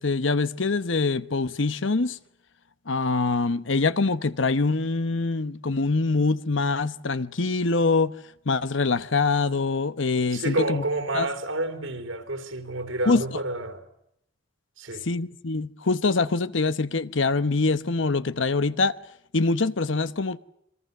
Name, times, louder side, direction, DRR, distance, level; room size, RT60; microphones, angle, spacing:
voice 1, 0.0-2.2 2.9-8.1 8.5-10.8 11.1-11.3 13.1-13.2 15.0-18.9 19.3-20.4, left 3 dB, 75° left, 1.0 m, -24 dB
voice 2, 10.3-13.8 14.8-15.0, right 2 dB, 85° right, 3.7 m, -29 dB
27.5 x 23.5 x 6.7 m
head